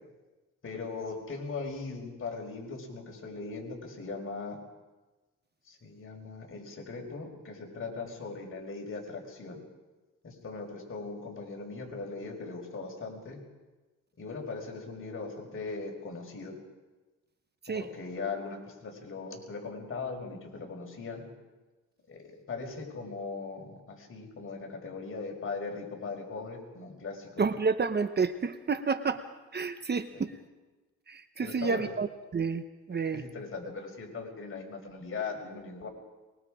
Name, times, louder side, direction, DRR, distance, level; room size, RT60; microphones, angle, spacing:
voice 1, 0.6-4.6 5.7-9.6 10.2-13.4 14.2-16.6 17.7-21.2 22.1-27.5 30.1-30.2 31.4-31.9 32.9-35.9, left 4 dB, 45° left, 1 dB, 5.3 m, -39 dB
voice 2, 27.4-29.2 29.5-30.3 31.1-33.2, right 5 dB, 35° right, 10 dB, 1.1 m, -30 dB
23.5 x 22.0 x 5.1 m, 1.2 s
cardioid pair, 90°, 30 cm